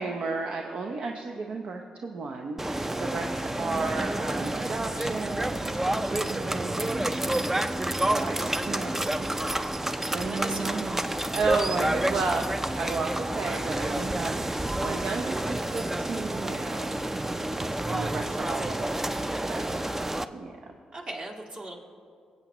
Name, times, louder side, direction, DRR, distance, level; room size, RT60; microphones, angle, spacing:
voice 1, 0.0-7.3 8.0-9.3 10.1-11.0 11.3-17.0 17.9-19.0 19.5-19.9 20.3-20.6, right 4 dB, 65° right, 2 dB, 0.6 m, -33 dB
sound 1, 2.6-20.3, right 1 dB, 15° right, 0.4 m, -29 dB
voice 2, 3.7-4.1 10.2-11.1 18.5-18.8 20.9-21.8, right 2 dB, 45° right, 0 dB, 1.8 m, -39 dB
19.0 x 8.0 x 3.0 m, 2.3 s
supercardioid pair, 50°, 2 cm